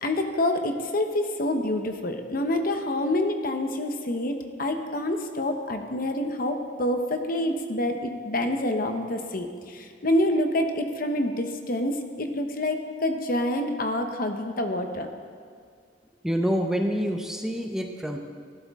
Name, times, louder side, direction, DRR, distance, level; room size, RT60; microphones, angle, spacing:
voice 1, 0.0-15.1, left 1 dB, 50° left, 6 dB, 0.9 m, -27 dB
voice 2, 16.2-18.2, equal, 5° right, 3 dB, 0.7 m, -27 dB
15.5 x 12.5 x 3.6 m, 2.1 s
head